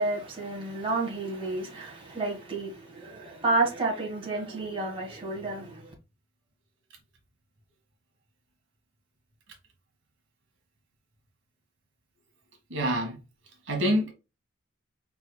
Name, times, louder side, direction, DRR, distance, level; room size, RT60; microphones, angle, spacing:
voice 1, 0.0-5.8, right 2 dB, 25° right, 1.5 m, -30 dB
voice 2, 12.7-13.2 13.7-14.1, equal, 70° right, 1.4 m, -26 dB
4.7 x 3.9 x 2.2 m
head